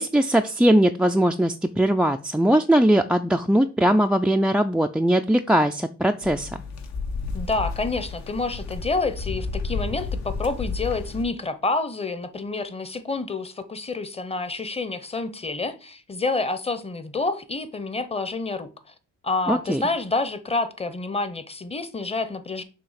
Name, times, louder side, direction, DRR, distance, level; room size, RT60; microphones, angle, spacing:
voice 1, 0.0-6.5 19.5-19.8, right 1 dB, 5° right, 0.3 m, -20 dB
sound 1, 6.2-11.2, left 4 dB, 65° left, 1.1 m, -31 dB
voice 2, 7.3-18.9 19.2-22.6, left 3 dB, 20° left, 0.8 m, -28 dB
6.9 x 2.8 x 5.7 m
cardioid pair, 90°, 30 cm